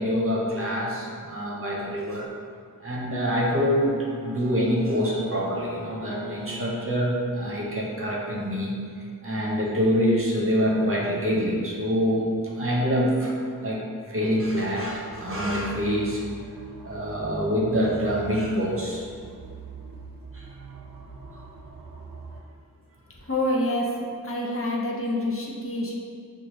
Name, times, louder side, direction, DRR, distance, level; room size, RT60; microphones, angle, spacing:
voice 1, 0.0-2.3 2.8-12.3 12.6-16.2 16.8-19.1 20.3-20.5, equal, 40° right, -4 dB, 0.8 m, -26 dB
Bowed string instrument, 3.4-7.6, equal, 85° left, 0.8 m, -40 dB
sound 1, 14.4-22.4, right 4 dB, 80° right, 0.6 m, -43 dB
voice 2, 23.3-25.9, left 1 dB, 40° left, -4 dB, 0.7 m, -27 dB
6.3 x 2.4 x 3.0 m, 2.2 s
wide cardioid pair, 75°, 34 cm